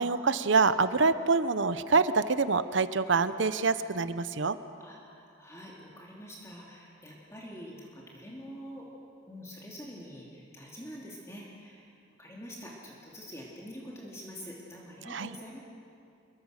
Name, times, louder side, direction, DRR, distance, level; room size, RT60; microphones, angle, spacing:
voice 1, 0.0-4.6 15.1-15.3, right 4 dB, 75° right, 12 dB, 0.8 m, -26 dB
voice 2, 4.8-8.9 9.3-11.9 12.2-15.6, equal, 15° left, -3 dB, 2.7 m, -46 dB
27.5 x 23.0 x 6.6 m, 2.6 s
head